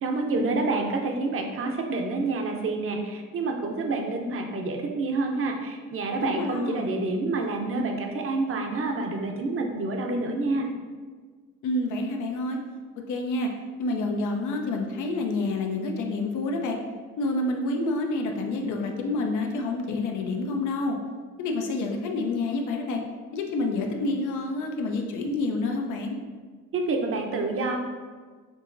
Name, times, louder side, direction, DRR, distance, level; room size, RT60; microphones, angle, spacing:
voice 1, 0.0-10.7 26.7-27.8, right 3 dB, 45° right, 2 dB, 0.7 m, -28 dB
voice 2, 6.2-6.9 11.6-12.6 13.1-13.5 13.8-16.8 17.2-21.0 21.4-23.0 23.3-26.2, left 2 dB, 80° left, 2 dB, 0.7 m, -28 dB
6.1 x 2.7 x 2.6 m, 1.5 s
cardioid pair, 90°, 30 cm